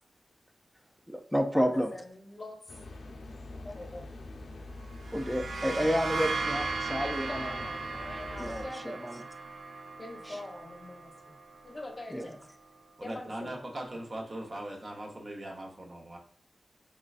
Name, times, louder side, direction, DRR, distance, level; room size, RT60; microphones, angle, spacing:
voice 1, 1.1-1.9 5.1-7.5 8.4-9.2 10.3-10.4 12.1-12.4, equal, ahead, 5 dB, 0.3 m, -30 dB
voice 2, 1.6-2.8 3.6-4.1 7.0-9.0 10.0-11.1 11.6-12.4 13.0-13.6, left 2 dB, 30° left, 1 dB, 0.7 m, -43 dB
sound 1, 2.7-8.7, left 2 dB, 75° left, 0.5 m, -44 dB
sound 2, 4.9-12.5, right 3 dB, 75° right, 0.4 m, -37 dB
voice 3, 13.0-16.2, right 1 dB, 35° right, 0 dB, 0.7 m, -40 dB
3.7 x 3.2 x 2.3 m, 0.62 s
wide cardioid pair, 135°, 0 cm